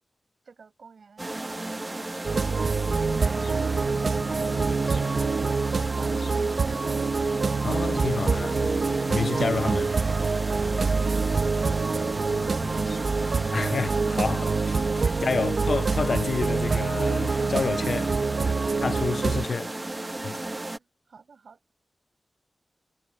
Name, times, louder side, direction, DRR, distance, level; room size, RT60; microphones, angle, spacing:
voice 1, 0.4-2.4 5.2-7.3 20.7-21.6, right 5 dB, 75° right, 4.7 m, -52 dB
sound 1, 1.2-20.8, right 2 dB, 20° right, 0.8 m, -34 dB
sound 2, 2.2-19.4, right 4 dB, 55° right, 0.6 m, -26 dB
sound 3, 2.8-13.8, left 5 dB, 85° left, 2.8 m, -50 dB
voice 2, 7.6-10.0 13.5-19.8 20.2-20.4, left 5 dB, 65° left, 0.5 m, -30 dB
wide cardioid pair, 125°, 0 cm